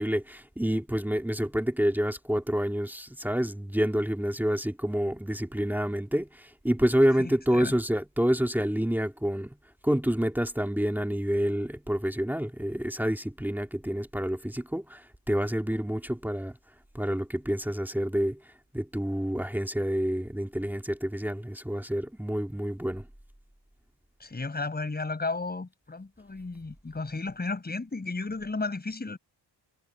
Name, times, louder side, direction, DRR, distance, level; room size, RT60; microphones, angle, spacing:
voice 1, 0.0-9.6 9.8-16.6 16.9-18.4 18.7-23.1, equal, 5° right, 2.5 m, -28 dB
voice 2, 7.2-7.7 24.2-29.2, left 3 dB, 20° left, 5.7 m, -34 dB
cardioid pair, 110°, 44 cm